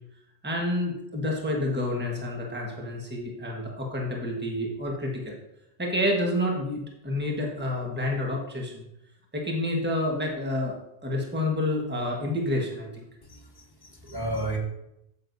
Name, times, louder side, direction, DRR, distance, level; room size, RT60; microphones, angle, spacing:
voice 1, 0.4-5.4 5.8-8.8 9.3-10.8 11.0-13.1 14.0-14.1, left 1 dB, 10° right, -1 dB, 1.4 m, -29 dB
voice 2, 13.3-14.6, right 1 dB, 20° left, -1 dB, 1.4 m, -33 dB
9.6 x 7.9 x 2.7 m, 0.83 s
omnidirectional pair, 1.1 m